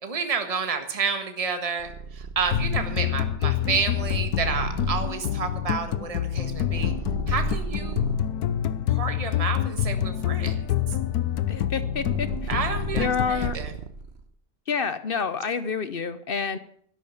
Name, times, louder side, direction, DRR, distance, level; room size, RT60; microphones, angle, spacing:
voice 1, 0.0-6.9 7.3-8.1 8.9-11.0 12.5-13.7, right 5 dB, 25° right, 7 dB, 1.5 m, -30 dB
Purr, 1.8-8.3 9.0-14.2, right 4 dB, 45° right, 1.3 m, -35 dB
sound 1, 2.5-13.5, left 11 dB, 80° left, 1.3 m, -27 dB
voice 2, 11.5-12.5 12.9-13.6 14.7-16.6, left 6 dB, 50° left, 13 dB, 0.7 m, -28 dB
13.0 x 11.0 x 7.1 m, 0.64 s
omnidirectional pair, 1.6 m